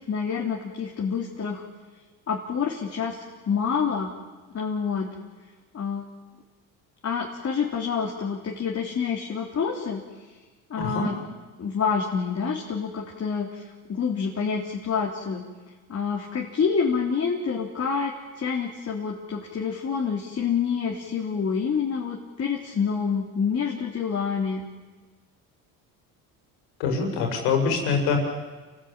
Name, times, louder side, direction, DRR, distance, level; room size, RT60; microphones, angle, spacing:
voice 1, 0.1-1.6 2.3-3.2 3.5-4.1 4.5-5.1 5.7-6.1 7.0-10.0 10.7-11.1 11.6-13.6 13.9-15.4 15.9-24.6, left 6 dB, 40° left, -1 dB, 3.6 m, -27 dB
voice 2, 10.8-11.1 26.8-28.2, left 5 dB, 85° left, 3 dB, 6.4 m, -24 dB
29.5 x 16.0 x 9.1 m, 1.3 s
cardioid pair, 105°, 39 cm